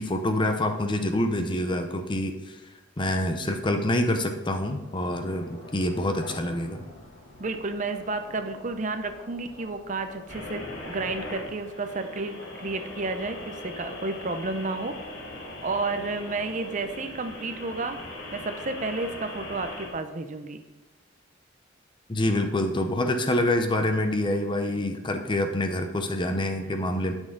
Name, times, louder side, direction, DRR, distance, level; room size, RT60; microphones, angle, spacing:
voice 1, 0.0-2.6 3.0-6.8 22.1-27.1, left 1 dB, 25° left, 6 dB, 0.7 m, -26 dB
sound 1, 4.4-10.6, left 1 dB, 65° left, 3.2 m, -47 dB
voice 2, 7.4-15.0 15.3-18.0 18.3-20.6, right 3 dB, 40° right, 8 dB, 0.6 m, -31 dB
sound 2, 10.3-19.9, left 1 dB, 80° left, 2.2 m, -40 dB
11.0 x 6.3 x 3.9 m, 1.0 s
head